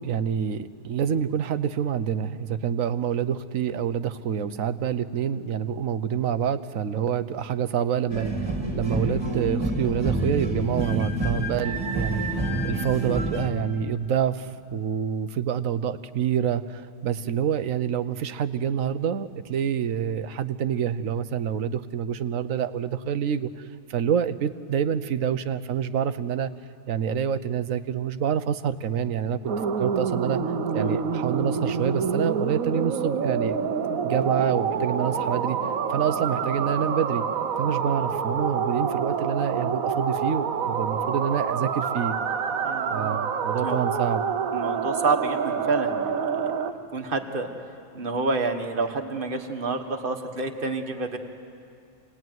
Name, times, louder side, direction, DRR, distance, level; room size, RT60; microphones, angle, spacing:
voice 1, 0.0-12.2 12.6-23.5 23.9-26.5 26.9-30.4 30.7-33.6 34.0-35.6 35.9-37.2 37.6-42.2 42.9-44.2, right 8 dB, 75° right, 13 dB, 1.2 m, -27 dB
sound 1, 8.1-13.5, right 1 dB, 20° right, 2.3 m, -28 dB
sound 2, 29.5-46.7, right 6 dB, 90° right, 1.5 m, -27 dB
voice 2, 42.6-43.2 43.6-43.8 44.5-46.5 46.9-47.5 47.9-51.2, right 3 dB, 40° right, 5 dB, 1.7 m, -28 dB
27.5 x 19.0 x 9.3 m, 2.4 s
omnidirectional pair, 1.4 m